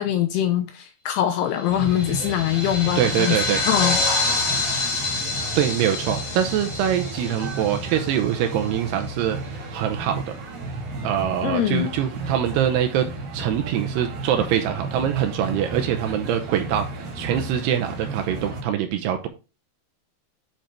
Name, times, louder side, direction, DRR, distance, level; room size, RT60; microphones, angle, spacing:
voice 1, 0.0-3.4 3.6-4.0 11.4-11.9, left 11 dB, 85° left, 2.4 m, -23 dB
sound 1, 1.6-8.4, left 3 dB, 35° left, 1.8 m, -27 dB
sound 2, 1.7-18.6, right 2 dB, 55° right, 1.7 m, -33 dB
voice 2, 3.0-3.6 5.6-9.4 9.7-10.2 11.0-13.1 13.3-19.3, right 10 dB, 80° right, 2.5 m, -24 dB
8.9 x 5.0 x 3.2 m
omnidirectional pair, 5.3 m